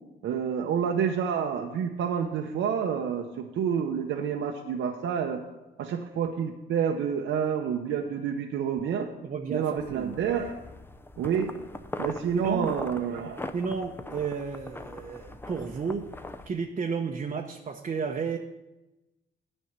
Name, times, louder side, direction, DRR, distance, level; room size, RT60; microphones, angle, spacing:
voice 1, 0.2-5.4 5.8-9.1 9.5-10.6 11.2-11.6 12.0-13.4, right 7 dB, 75° right, 3 dB, 0.8 m, -28 dB
voice 2, 9.2-10.4 12.3-12.8 13.5-16.1 16.4-18.4, right 5 dB, 35° right, 2 dB, 0.8 m, -32 dB
sound 1, 9.8-16.5, left 2 dB, 10° left, 0.6 m, -41 dB
10.0 x 5.3 x 8.1 m, 1.0 s
cardioid pair, 90°, 20 cm